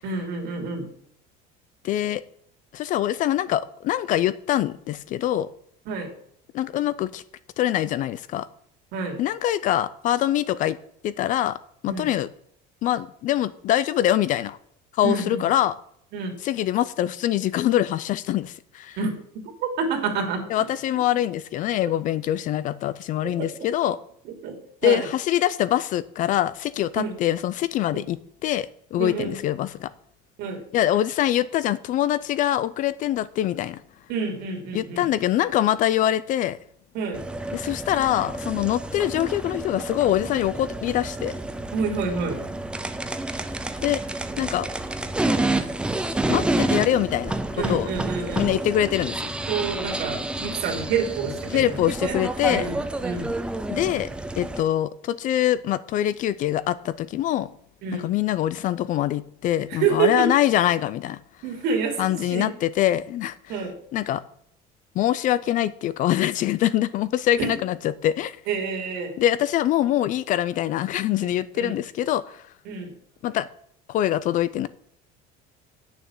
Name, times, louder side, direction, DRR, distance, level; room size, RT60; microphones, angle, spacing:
voice 1, 0.0-0.9 5.9-6.1 8.9-9.2 11.9-12.1 15.0-15.5 16.1-16.4 19.0-20.7 23.2-23.5 24.2-25.1 26.9-27.2 29.0-29.4 30.4-30.6 34.1-35.1 36.9-37.3 41.7-42.4 47.6-48.5 49.5-52.2 52.5-53.3 57.8-58.1 59.7-60.3 61.4-62.5 63.5-63.8 67.4-67.5 68.5-69.2 71.2-71.7 72.6-72.9, right 5 dB, 55° right, 4 dB, 2.8 m, -28 dB
voice 2, 1.8-2.2 2.7-5.5 6.5-7.2 7.6-8.5 9.2-10.8 11.0-11.6 11.8-12.3 12.8-14.6 14.9-15.8 16.4-19.0 20.5-24.0 24.8-29.9 30.7-33.8 34.7-36.6 37.5-41.3 43.8-44.0 44.4-44.7 46.3-47.4 47.7-47.9 48.4-49.3 51.5-52.7 53.7-54.1 54.4-57.5 57.9-61.2 62.0-63.5 63.9-64.2 65.0-67.8 68.0-68.4 69.2-72.4 73.2-73.5 73.9-74.7, left 12 dB, 40° left, 16 dB, 0.5 m, -24 dB
sound 1, 37.1-54.6, right 2 dB, 5° right, 0.6 m, -29 dB
8.8 x 7.0 x 7.1 m, 0.67 s
cardioid pair, 170°, 20 cm